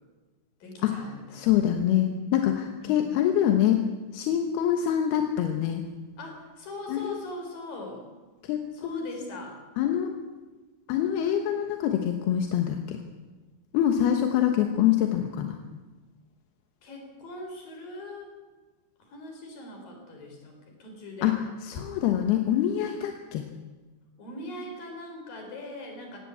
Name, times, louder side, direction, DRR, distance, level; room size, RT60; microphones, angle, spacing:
voice 1, 0.6-1.5 2.8-3.1 6.2-8.0 8.7-9.6 16.8-18.4 19.0-21.4 24.2-26.2, left 2 dB, 50° left, 2 dB, 5.8 m, -41 dB
voice 2, 1.3-3.8 4.1-5.8 6.9-7.0 8.5-9.1 9.8-10.1 10.9-13.0 13.7-15.6 21.2-21.4 21.6-23.4, left 10 dB, 70° left, 5 dB, 2.8 m, -25 dB
17.5 x 17.0 x 8.5 m, 1.2 s
omnidirectional pair, 5.4 m